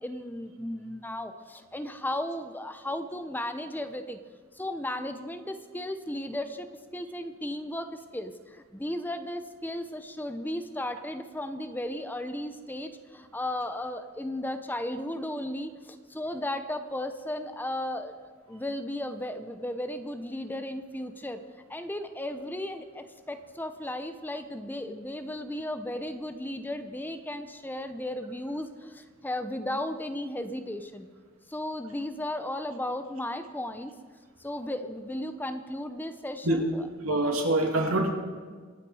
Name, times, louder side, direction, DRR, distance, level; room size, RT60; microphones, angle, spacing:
voice 1, 0.0-4.2 4.5-6.7 6.9-21.4 21.7-31.1 31.5-33.9 34.4-36.9, left 1 dB, 10° left, 9 dB, 0.7 m, -35 dB
voice 2, 37.0-38.1, right 1 dB, 85° right, 1 dB, 2.7 m, -25 dB
25.0 x 9.2 x 4.8 m, 1.6 s
head